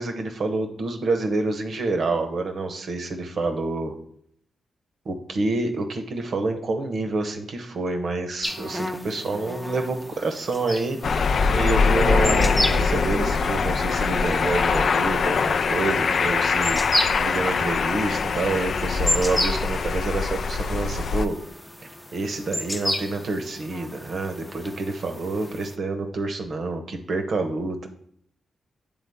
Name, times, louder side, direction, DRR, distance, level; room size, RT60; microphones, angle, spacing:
voice 1, 0.0-3.9 5.0-21.3 22.1-27.9, right 3 dB, 65° right, 6 dB, 0.9 m, -28 dB
sound 1, 8.4-25.8, left 1 dB, 10° left, 0.6 m, -33 dB
sound 2, 11.0-21.3, left 5 dB, 65° left, 0.3 m, -23 dB
8.1 x 3.5 x 3.5 m, 0.66 s
supercardioid pair, 55°, 0 cm